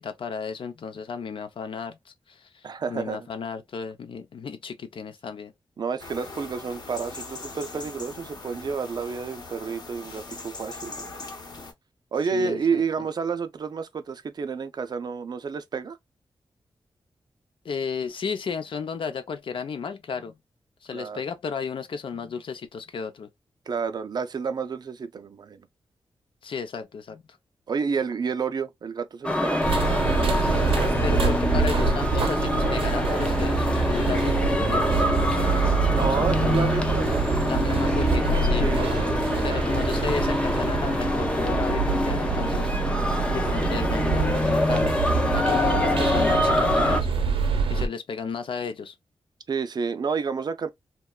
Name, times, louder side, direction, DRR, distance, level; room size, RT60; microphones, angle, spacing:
voice 1, 0.0-5.5 12.3-13.1 17.6-20.4 20.8-23.3 26.4-27.2 31.0-35.5 36.1-36.5 37.5-38.7 39.4-42.7 43.3-47.1 47.7-48.9, left 6 dB, 70° left, 0.5 m, -33 dB
voice 2, 2.6-3.3 5.8-11.1 12.1-16.0 20.9-21.2 23.7-25.6 27.7-29.6 35.9-37.5 38.6-39.2 49.5-50.7, right 5 dB, 50° right, 0.4 m, -30 dB
sound 1, 6.0-11.7, left 3 dB, 50° left, 0.9 m, -40 dB
sound 2, 29.2-47.0, left 1 dB, 10° left, 0.4 m, -25 dB
sound 3, 29.6-47.9, right 4 dB, 90° right, 0.7 m, -26 dB
2.8 x 2.2 x 2.2 m
wide cardioid pair, 130°, 9 cm